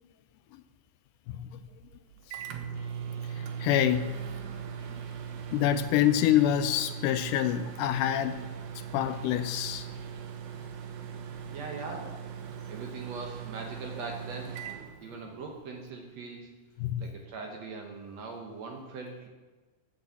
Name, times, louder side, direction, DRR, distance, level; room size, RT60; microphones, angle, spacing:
Microwave oven, 1.6-15.6, right 7 dB, 80° right, 1.4 m, -40 dB
voice 1, 3.3-4.1 5.5-8.5 8.9-9.9 16.8-17.0, left 11 dB, 80° left, 10 dB, 2.0 m, -26 dB
voice 2, 11.5-12.2 12.7-14.6 15.0-16.5 17.0-19.3, right 4 dB, 65° right, 1 dB, 1.9 m, -41 dB
8.0 x 7.7 x 6.9 m, 1.3 s
omnidirectional pair, 3.9 m